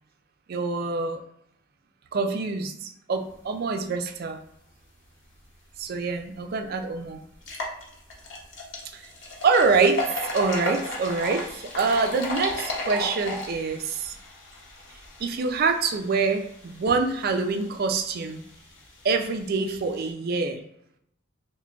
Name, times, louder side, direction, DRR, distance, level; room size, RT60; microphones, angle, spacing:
voice 1, 0.5-1.2 2.1-4.4 5.8-7.2 8.9-9.0 9.4-10.1 10.3-14.2 15.2-18.4 19.0-20.6, right 4 dB, 45° right, 6 dB, 0.3 m, -25 dB
sound 1, 6.1-6.2 6.6-6.7 7.3-20.1, left 1 dB, 60° left, 0.8 m, -36 dB
3.3 x 2.1 x 3.6 m, 0.74 s
head